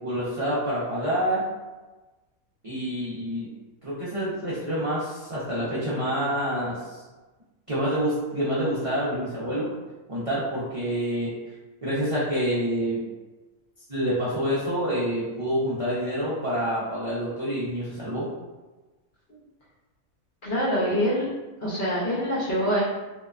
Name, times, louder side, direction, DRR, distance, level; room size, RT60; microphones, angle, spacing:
voice 1, 0.0-1.4 2.6-3.5 3.8-7.0 7.7-9.7 10.1-11.3 11.8-13.0 13.9-18.3, equal, 50° right, -10 dB, 0.4 m, -27 dB
voice 2, 20.4-21.3 21.6-22.8, equal, 50° left, -9 dB, 0.6 m, -25 dB
2.8 x 2.1 x 2.3 m, 1.2 s
omnidirectional pair, 1.5 m